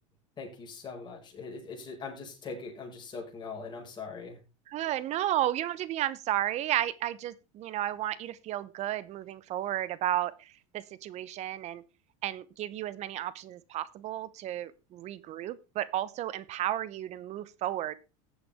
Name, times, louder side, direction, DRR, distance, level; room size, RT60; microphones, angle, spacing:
voice 1, 0.4-4.4, left 4 dB, 30° left, -1 dB, 5.6 m, -41 dB
voice 2, 4.7-11.8 12.2-17.9, right 13 dB, 45° right, 18 dB, 0.9 m, -33 dB
14.5 x 8.5 x 3.6 m, 0.30 s
supercardioid pair, 115°, 16 cm